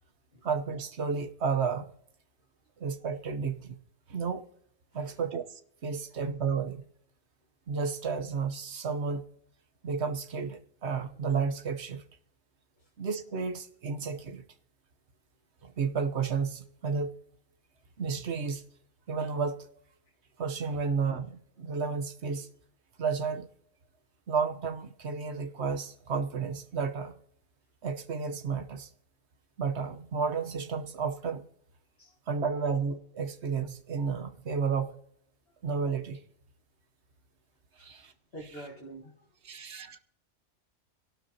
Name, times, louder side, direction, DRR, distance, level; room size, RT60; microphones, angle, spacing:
voice 1, 0.4-1.9 2.8-3.8 4.1-4.5 4.9-6.8 7.7-9.2 9.8-12.0 13.0-14.4 15.6-17.1 18.0-18.6 19.1-19.7 20.4-22.5 23.0-23.5 24.3-27.2 27.8-28.9 29.6-31.5 32.3-35.0 35.6-36.2 37.8-38.1 39.4-40.0, right 5 dB, 65° right, 7 dB, 1.2 m, -32 dB
voice 2, 38.3-39.3, right 1 dB, 55° left, -2 dB, 1.9 m, -47 dB
25.5 x 12.0 x 2.8 m, 0.69 s
omnidirectional pair, 1.2 m